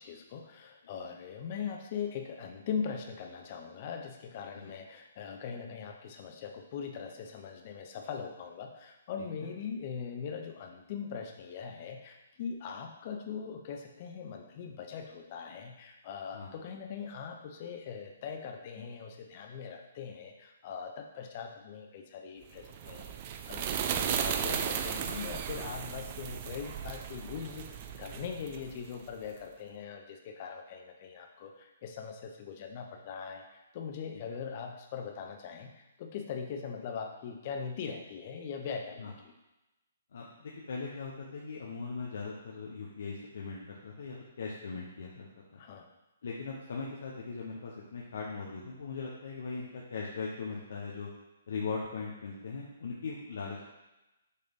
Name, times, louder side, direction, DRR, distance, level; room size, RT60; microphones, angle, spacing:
voice 1, 0.0-39.3 45.6-45.9, left 6 dB, 40° left, 4 dB, 0.9 m, -41 dB
sound 1, 22.6-29.2, right 8 dB, 35° right, 0.5 m, -35 dB
voice 2, 40.1-45.6 46.2-51.1 51.5-53.6, left 4 dB, 70° left, -3 dB, 1.1 m, -39 dB
6.7 x 3.3 x 5.4 m, 1.0 s
hypercardioid pair, 155°, 0 cm